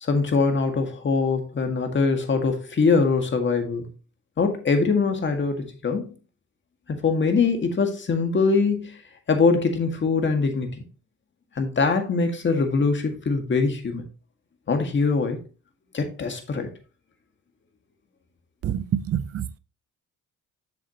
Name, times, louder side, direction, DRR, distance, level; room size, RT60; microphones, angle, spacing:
voice 1, 0.0-3.8 4.4-6.1 6.9-9.0 9.3-10.8 11.6-14.1 14.7-15.4 15.9-16.7, left 4 dB, 40° left, 1.8 m, -23 dB
voice 2, 18.6-19.6, right 9 dB, 50° right, 0.6 m, -27 dB
7.3 x 7.1 x 2.8 m
cardioid pair, 90°, 30 cm